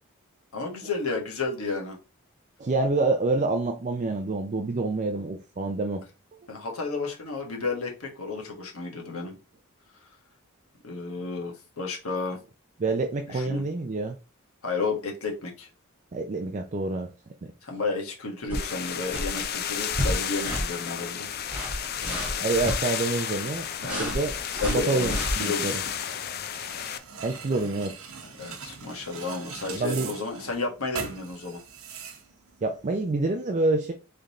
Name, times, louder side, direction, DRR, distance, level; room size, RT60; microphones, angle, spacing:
voice 1, 0.5-2.0 6.5-9.4 10.8-12.4 13.3-13.6 14.6-15.7 17.6-21.3 22.0-22.5 23.8-24.1 24.5-25.8 28.4-31.6, left 3 dB, 70° left, 1.4 m, -32 dB
voice 2, 2.6-6.0 12.8-14.2 16.1-17.1 17.4-17.5 22.4-24.3 24.6-25.8 27.2-28.1 29.7-30.1 32.6-33.9, right 3 dB, 35° right, 0.4 m, -27 dB
sound 1, 18.5-27.0, left 9 dB, 45° left, 0.5 m, -32 dB
sound 2, 18.5-18.8 19.1-19.4 19.9-20.2 20.4-20.7 21.4-22.8 23.8-25.3, equal, 10° right, 1.5 m, -30 dB
sound 3, 25.5-33.1, right 6 dB, 70° right, 0.9 m, -41 dB
3.8 x 3.3 x 4.1 m
head